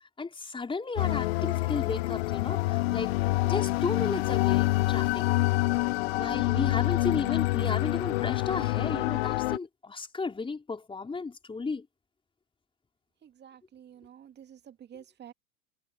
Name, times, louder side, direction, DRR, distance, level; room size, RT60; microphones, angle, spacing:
voice 1, 0.2-5.4 6.1-11.9, left 4 dB, 10° left, 5.0 m, -34 dB
sound 1, 1.0-9.6, left 20 dB, 40° left, 0.7 m, -27 dB
voice 2, 13.2-15.3, right 9 dB, 20° right, 2.4 m, -50 dB
figure-of-eight pair, 90°, 47 cm